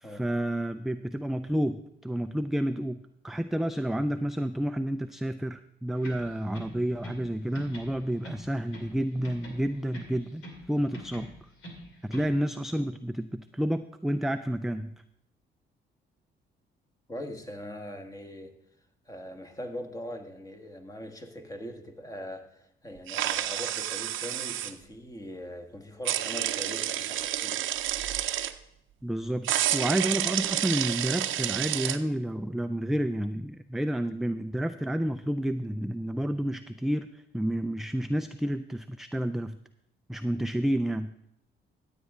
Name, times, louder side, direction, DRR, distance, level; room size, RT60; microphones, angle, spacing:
voice 1, 0.0-10.4 10.7-11.3 12.0-14.9 29.0-39.6 40.1-41.1, right 1 dB, ahead, 9 dB, 0.3 m, -30 dB
sound 1, 6.0-7.3 7.5-9.0 9.2-10.7 10.9-12.4, equal, 85° left, 2.5 m, -45 dB
voice 2, 17.1-18.5 19.0-27.6, equal, 15° left, 5 dB, 1.5 m, -41 dB
sound 2, 23.1-24.7 26.0-28.5 29.4-32.0, right 12 dB, 80° right, 0.6 m, -29 dB
14.0 x 8.3 x 3.6 m, 0.81 s
cardioid pair, 90°, 20 cm